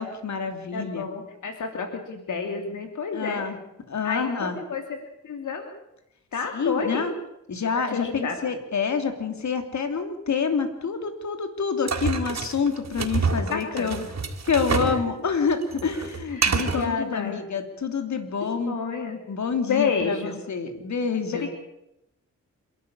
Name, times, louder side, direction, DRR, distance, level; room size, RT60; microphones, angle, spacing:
voice 1, 0.0-1.0 3.1-3.6 3.9-4.6 6.5-7.1 7.5-14.0 14.4-18.7 19.3-21.5, left 5 dB, 65° left, 7 dB, 3.2 m, -27 dB
voice 2, 0.7-3.5 4.0-5.0 5.2-5.7 6.3-7.0 7.7-8.4 13.5-14.1 14.8-15.0 16.3-17.4 18.7-19.2 19.7-20.4 21.3-21.5, left 5 dB, 85° left, 5 dB, 2.8 m, -30 dB
sound 1, 11.9-15.0 15.3-16.9, right 5 dB, 60° right, 3.6 m, -27 dB
27.0 x 12.5 x 8.7 m, 0.85 s
cardioid pair, 85°, 30 cm